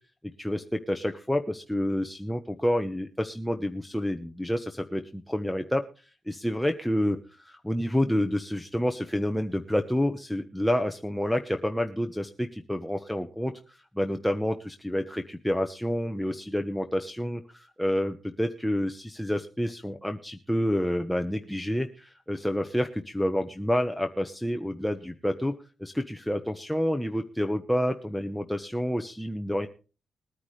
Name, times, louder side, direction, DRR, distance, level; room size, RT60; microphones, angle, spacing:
voice 1, 0.4-5.8 6.3-7.2 7.5-25.5 25.8-29.7, equal, ahead, 5 dB, 1.0 m, -29 dB
20.5 x 9.6 x 3.3 m, 0.34 s
cardioid pair, 90°, 0 cm